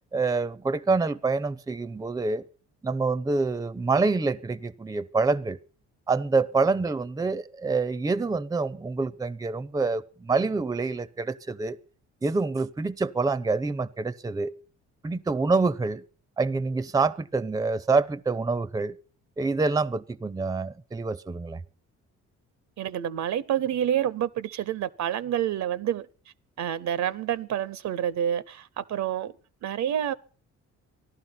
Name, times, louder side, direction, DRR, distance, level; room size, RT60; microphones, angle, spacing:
voice 1, 0.1-2.4 2.8-5.6 6.1-11.8 12.2-14.5 15.0-16.0 16.4-18.9 19.4-21.6, right 3 dB, 10° right, 0.6 m, -26 dB
voice 2, 22.8-26.1 26.6-29.3 29.6-30.1, right 10 dB, 65° right, 0.7 m, -28 dB
15.0 x 11.5 x 5.7 m
cardioid pair, 90°, 30 cm